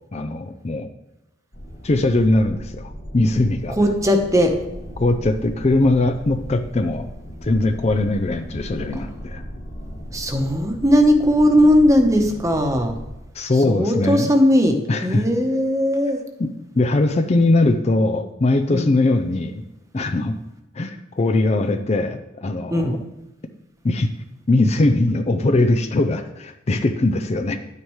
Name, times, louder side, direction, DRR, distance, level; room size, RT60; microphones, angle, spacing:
voice 1, 0.1-0.9 1.8-3.8 5.0-7.1 7.4-9.4 13.3-14.3 14.9-15.2 16.4-19.6 19.9-20.4 20.8-23.0 23.8-24.1 24.5-27.6, left 2 dB, 35° left, 7 dB, 0.5 m, -20 dB
sound 1, 1.5-13.1, equal, 65° left, 2.1 m, -36 dB
voice 2, 3.7-4.6 10.1-12.9 13.7-16.2 18.7-18.9 22.7-23.0, equal, 15° right, 4 dB, 1.0 m, -18 dB
10.5 x 9.6 x 3.2 m, 0.93 s
head